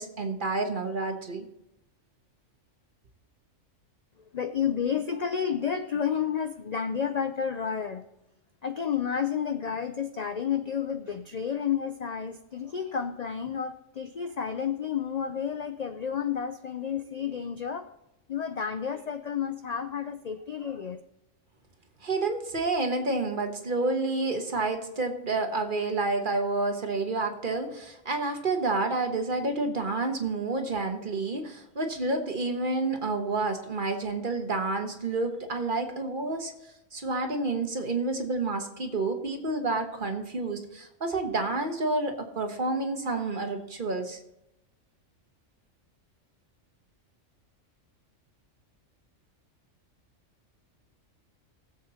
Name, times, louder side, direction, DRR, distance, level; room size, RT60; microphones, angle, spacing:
voice 1, 0.0-1.5 22.0-36.5 36.9-44.2, right 3 dB, 40° right, 5 dB, 1.4 m, -29 dB
voice 2, 4.3-8.0 8.6-17.9 18.3-21.0, left 7 dB, 60° left, 9 dB, 0.4 m, -31 dB
20.5 x 7.7 x 2.9 m, 0.87 s
omnidirectional pair, 1.4 m